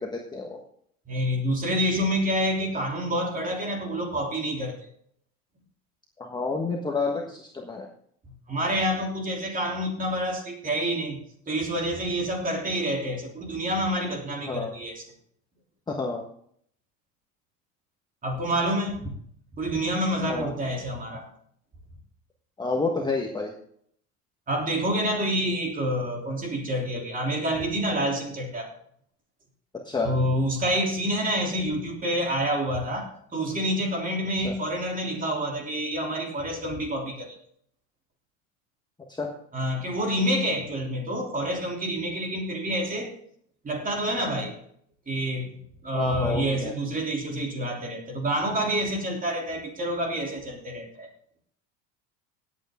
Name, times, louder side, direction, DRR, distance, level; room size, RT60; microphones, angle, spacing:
voice 1, 0.0-0.6 6.2-7.9 14.4-14.7 15.9-16.2 20.3-20.5 22.6-23.5 29.8-30.1 34.4-34.5 39.2-39.3 45.9-46.7, left 3 dB, 10° left, -1 dB, 1.4 m, -29 dB
voice 2, 1.1-4.7 8.5-11.2 11.5-15.0 18.2-19.1 19.6-21.3 24.5-28.7 30.0-37.3 39.5-43.1 43.6-44.6 45.1-51.1, equal, 20° right, 1 dB, 3.2 m, -28 dB
17.0 x 8.5 x 3.7 m, 0.64 s
cardioid pair, 135°, 40 cm